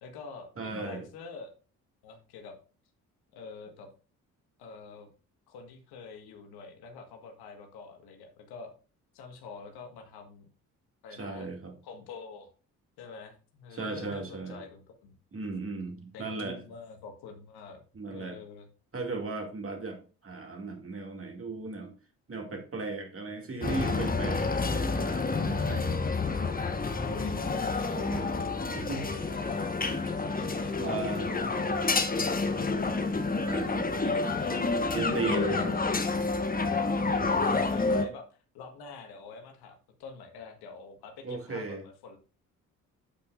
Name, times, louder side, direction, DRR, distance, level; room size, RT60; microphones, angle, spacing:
voice 1, 0.0-1.5 2.0-2.6 3.3-3.9 4.6-5.1 5.5-8.7 9.1-10.5 11.0-11.5 11.8-12.5 13.0-15.1 16.1-17.8 18.1-18.7 27.0-28.7 29.0-32.0 32.4-34.7 35.3-35.8 37.1-42.2, left 4 dB, 60° left, 4 dB, 1.7 m, -46 dB
voice 2, 0.6-1.1 11.1-11.7 13.7-14.6 15.3-16.6 17.9-18.4 18.9-21.9 22.3-25.9 28.0-28.3 28.7-29.0 30.8-31.4 33.4-33.9 34.9-35.7 37.6-37.8 41.2-41.8, right 3 dB, 30° right, 4 dB, 2.4 m, -36 dB
sound 1, 23.6-38.1, left 3 dB, 20° left, 1.3 m, -29 dB
8.5 x 8.3 x 2.6 m, 0.35 s
figure-of-eight pair, 45°, 43 cm